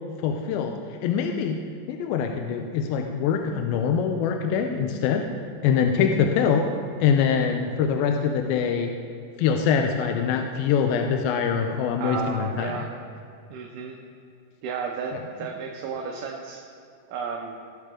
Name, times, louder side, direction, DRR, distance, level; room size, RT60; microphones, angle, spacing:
voice 1, 0.2-0.7 1.0-1.6 1.9-5.3 5.6-6.7 7.0-8.9 9.4-12.8, left 7 dB, 85° left, 3 dB, 2.4 m, -24 dB
voice 2, 12.0-12.9 13.5-14.0 14.6-16.6 17.1-17.5, right 6 dB, 70° right, 0 dB, 2.3 m, -33 dB
18.0 x 6.7 x 3.7 m, 2.6 s
omnidirectional pair, 4.2 m